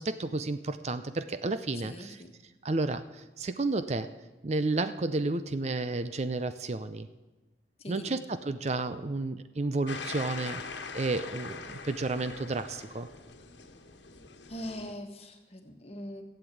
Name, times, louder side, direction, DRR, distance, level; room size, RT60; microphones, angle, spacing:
voice 1, 0.0-2.2 2.6-4.1 4.4-7.1 7.9-10.6 10.9-13.1, right 2 dB, 35° right, 11 dB, 0.5 m, -31 dB
voice 2, 1.7-2.3 7.8-8.2 14.5-16.2, left 1 dB, 35° left, 5 dB, 1.5 m, -42 dB
sound 1, 9.9-14.9, left 4 dB, 80° left, 1.4 m, -42 dB
15.5 x 8.1 x 8.5 m, 1.2 s
head